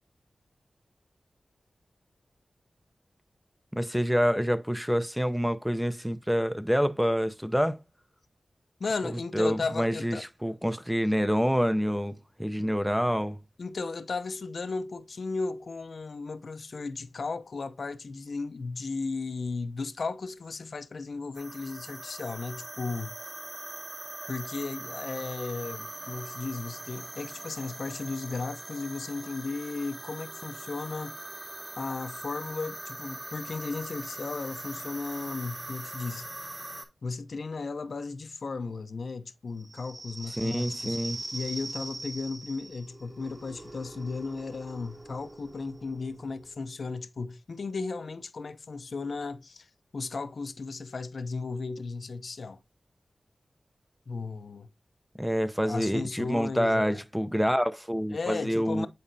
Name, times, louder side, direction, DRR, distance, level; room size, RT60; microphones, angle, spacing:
voice 1, 3.7-7.8 9.3-13.4 40.4-41.2 55.2-58.9, equal, 5° right, 0.5 m, -27 dB
voice 2, 8.8-10.2 12.6-12.7 13.6-23.1 24.3-31.2 31.8-36.3 37.0-41.0 41.3-52.6 54.1-54.7 55.6-57.0 58.1-58.9, left 4 dB, 70° left, 0.6 m, -35 dB
sound 1, 21.3-36.9, right 1 dB, 35° right, 1.8 m, -41 dB
sound 2, 39.6-46.9, right 2 dB, 50° right, 2.8 m, -42 dB
9.2 x 4.1 x 2.6 m
cardioid pair, 45°, 0 cm